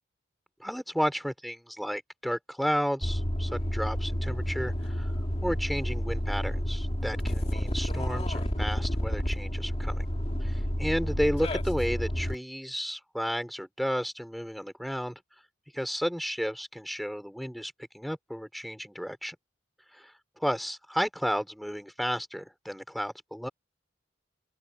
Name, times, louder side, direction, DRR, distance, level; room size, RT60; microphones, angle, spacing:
voice 1, 0.6-5.1 5.4-10.1 10.4-15.2 15.7-19.4 19.9-20.1 20.4-23.5, equal, ahead, 4.0 m, -32 dB
sound 1, 3.0-12.3, equal, 30° left, 2.5 m, -30 dB
open air
head